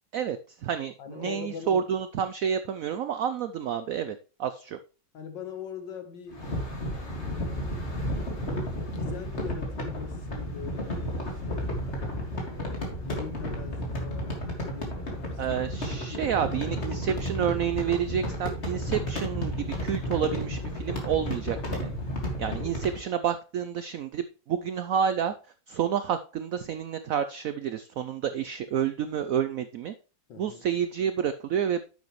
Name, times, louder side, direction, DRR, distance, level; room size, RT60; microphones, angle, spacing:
voice 1, 0.1-4.8 15.4-21.9 22.4-25.3 25.7-29.9 30.4-32.0, right 8 dB, 85° right, 0.7 m, -29 dB
voice 2, 1.0-1.8 5.1-6.5 7.1-7.7 8.4-11.8 12.5-15.6 15.9-17.1 17.4-17.5 22.6-22.9 30.3-30.6, left 6 dB, 70° left, 1.8 m, -42 dB
sound 1, 6.3-23.0, equal, 35° left, 2.3 m, -32 dB
9.3 x 7.3 x 3.1 m
omnidirectional pair, 2.0 m